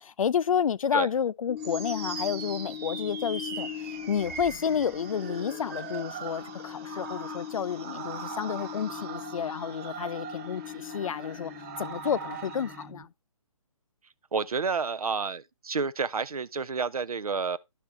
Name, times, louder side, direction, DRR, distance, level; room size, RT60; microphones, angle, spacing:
voice 1, 0.0-11.5 11.8-13.1, left 7 dB, 65° left, 0.4 m, -30 dB
sound 1, 1.5-13.0, left 10 dB, 10° left, 0.8 m, -41 dB
sound 2, 1.6-12.8, right 6 dB, 20° right, 1.2 m, -41 dB
voice 2, 14.3-17.6, right 5 dB, 85° right, 0.6 m, -30 dB
12.0 x 5.7 x 3.3 m
figure-of-eight pair, 150°, 18 cm